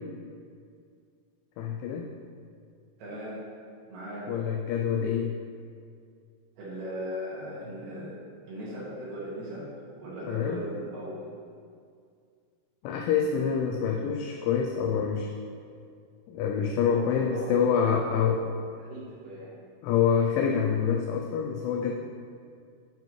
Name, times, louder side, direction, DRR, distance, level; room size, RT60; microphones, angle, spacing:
voice 1, 1.6-2.1 4.3-5.3 10.3-10.6 12.8-15.3 16.3-18.5 19.8-21.9, left 7 dB, 85° left, 1 dB, 2.8 m, -26 dB
voice 2, 3.0-3.4 3.9-4.3 6.6-8.1 8.5-9.7 10.0-11.3 16.8-18.2 18.8-19.5, equal, 55° right, -9 dB, 2.8 m, -38 dB
7.6 x 7.2 x 3.1 m, 2.2 s
omnidirectional pair, 5.8 m